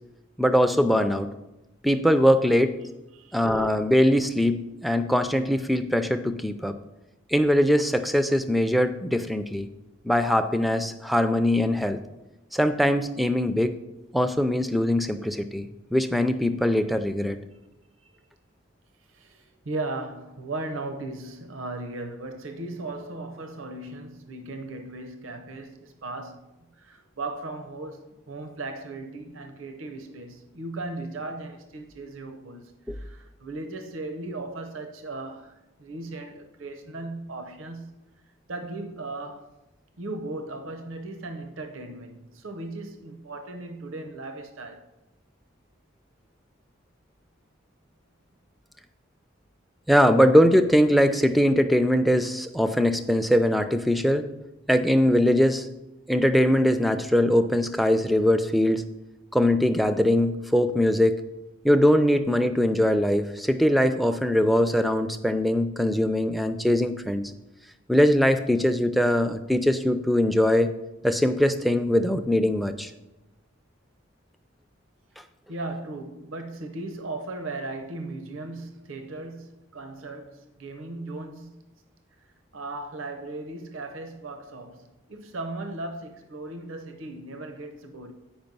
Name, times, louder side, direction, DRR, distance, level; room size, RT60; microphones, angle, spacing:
voice 1, 0.4-1.3 1.8-2.8 3.3-6.7 7.3-9.7 10.0-12.0 12.5-13.8 14.1-17.4 32.9-33.0 49.9-54.3 54.7-55.7 56.1-58.8 59.3-61.2 61.6-67.3 67.9-70.7 71.0-72.9, equal, ahead, 0.3 m, -21 dB
voice 2, 3.1-3.7 18.0-18.1 19.1-26.5 26.8-38.0 38.5-39.5 40.0-44.9 75.5-81.6 82.5-88.1, right 2 dB, 85° right, 0.7 m, -37 dB
8.9 x 5.2 x 5.3 m
head